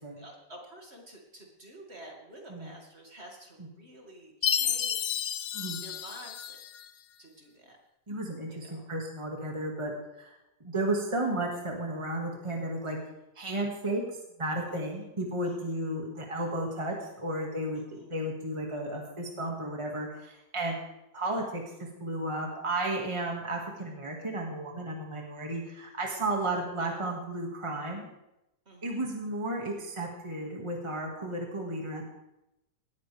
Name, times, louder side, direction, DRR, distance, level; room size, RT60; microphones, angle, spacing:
voice 1, 0.2-5.1 5.8-6.6 7.2-7.8 8.5-8.8 14.7-15.1 15.5-15.6 17.7-18.1 28.7-29.1, right 1 dB, 40° right, 0 dB, 2.6 m, -49 dB
Chime, 4.4-6.9, left 9 dB, 90° left, 1.3 m, -31 dB
voice 2, 8.1-9.9 10.2-10.3 10.6-13.0 13.4-14.0 14.4-20.8 21.1-21.6 22.0-28.1 28.8-32.1, right 1 dB, 20° right, -1 dB, 2.1 m, -33 dB
18.5 x 13.5 x 3.5 m, 0.88 s
omnidirectional pair, 1.7 m